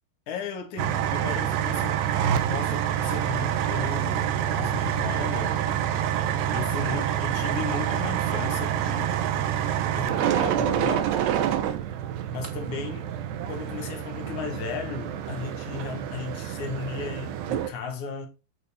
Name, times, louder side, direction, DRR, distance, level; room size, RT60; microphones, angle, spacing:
voice 1, 0.3-5.9 6.5-9.2 10.0-11.1 12.3-13.2 13.5-18.3, left 5 dB, 60° left, 2.4 m, -35 dB
sound 1, 0.8-17.7, right 10 dB, 80° right, 3.1 m, -27 dB
9.0 x 6.1 x 4.2 m
omnidirectional pair, 4.9 m